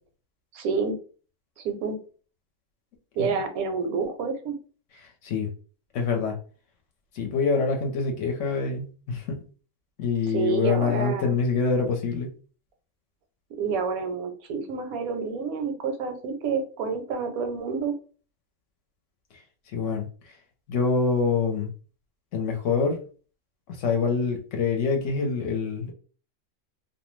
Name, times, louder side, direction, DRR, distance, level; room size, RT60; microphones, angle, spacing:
voice 1, 0.5-1.0 1.6-2.0 3.2-4.6 10.3-11.3 13.6-17.9, right 5 dB, 80° right, 7 dB, 1.0 m, -28 dB
voice 2, 5.9-6.4 7.1-9.4 10.0-12.3 19.7-20.1 20.7-21.7 22.3-23.0 23.7-25.9, left 5 dB, 65° left, 3 dB, 0.9 m, -25 dB
2.5 x 2.1 x 3.0 m, 0.39 s
omnidirectional pair, 1.5 m